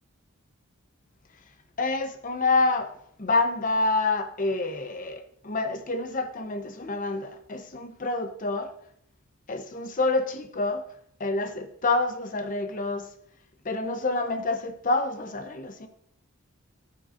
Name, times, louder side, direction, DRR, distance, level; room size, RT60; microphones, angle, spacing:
voice 1, 1.8-2.9 3.2-8.7 9.5-10.8 11.2-13.1 13.6-15.9, left 3 dB, 40° left, 0.7 m, -27 dB
14.5 x 7.5 x 2.5 m
head